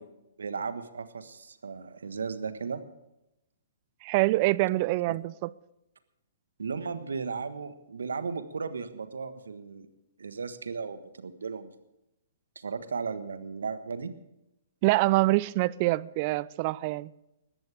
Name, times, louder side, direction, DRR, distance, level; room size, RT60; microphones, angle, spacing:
voice 1, 0.4-2.8 6.6-9.9 10.2-11.7 12.5-14.1, right 5 dB, 80° right, 1.4 m, -35 dB
voice 2, 4.0-5.5 14.8-17.1, right 20 dB, 40° right, 0.5 m, -25 dB
20.5 x 14.5 x 3.6 m
hypercardioid pair, 130°, 0 cm